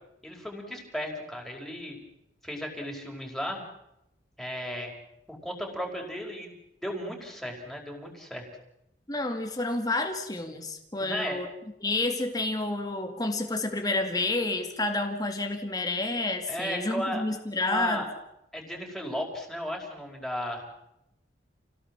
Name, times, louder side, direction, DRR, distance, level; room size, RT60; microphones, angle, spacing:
voice 1, 0.2-2.0 2.4-3.6 4.4-4.9 5.3-6.5 6.8-8.5 11.0-11.4 16.5-17.2 17.6-18.1 18.5-20.7, equal, ahead, 1 dB, 5.1 m, -35 dB
voice 2, 9.1-11.5 11.8-18.0, left 2 dB, 20° left, 4 dB, 2.3 m, -29 dB
29.0 x 18.0 x 7.5 m, 0.84 s
head